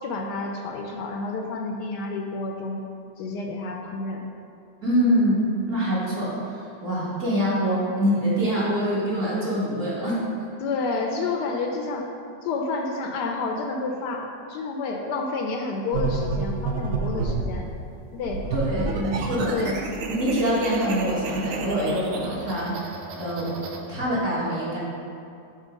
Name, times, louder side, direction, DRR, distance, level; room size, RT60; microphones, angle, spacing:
voice 1, 0.0-2.8 3.2-4.2 10.6-12.1 12.4-17.7 18.1-18.4 18.9-19.8, left 3 dB, 75° left, 2 dB, 1.1 m, -29 dB
voice 2, 4.8-10.2 18.5-19.6 20.0-23.6 23.9-24.8, equal, 45° right, -8 dB, 1.9 m, -25 dB
sound 1, 15.9-17.5 18.2-23.8, right 4 dB, 65° right, 0.8 m, -30 dB
5.4 x 4.2 x 5.1 m, 2.6 s
omnidirectional pair, 1.9 m